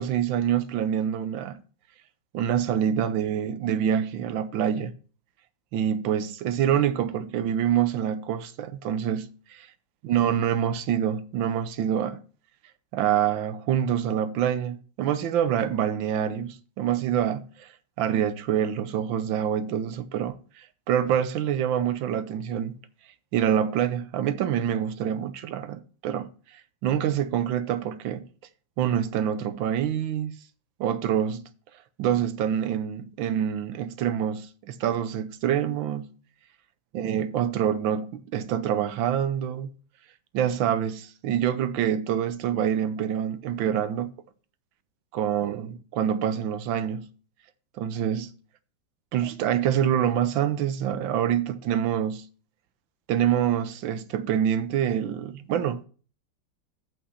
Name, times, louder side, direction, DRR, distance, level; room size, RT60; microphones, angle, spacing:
voice 1, 0.0-1.6 2.3-4.9 5.7-9.3 10.0-12.2 12.9-17.7 18.0-22.8 23.3-26.3 26.8-28.3 28.8-30.4 30.8-31.5 32.0-36.1 36.9-39.7 40.3-44.1 45.1-47.1 47.8-48.3 49.1-52.2 53.1-55.9, right 9 dB, 85° right, 1.5 m, -26 dB
8.5 x 5.5 x 5.6 m
omnidirectional pair, 2.0 m